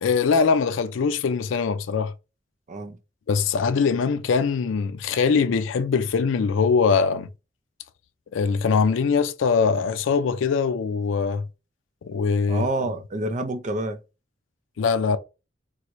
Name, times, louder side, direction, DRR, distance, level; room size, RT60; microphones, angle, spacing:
voice 1, 0.0-2.1 3.3-7.3 8.3-11.5 12.0-12.7 14.8-15.2, left 5 dB, 90° left, 0.4 m, -22 dB
voice 2, 12.5-14.0, right 2 dB, 40° right, 0.5 m, -28 dB
4.5 x 2.1 x 2.5 m
head